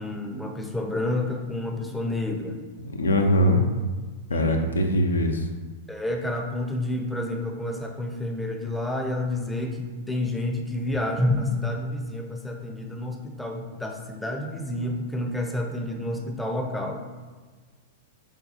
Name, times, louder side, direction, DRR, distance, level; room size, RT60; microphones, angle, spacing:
voice 1, 0.0-2.7 4.3-4.5 5.9-17.0, left 1 dB, 5° left, 2 dB, 0.5 m, -29 dB
voice 2, 2.8-3.6 4.3-5.5, left 1 dB, 80° left, 4 dB, 0.4 m, -22 dB
4.9 x 2.3 x 2.7 m, 1.4 s
figure-of-eight pair, 100°, 0 cm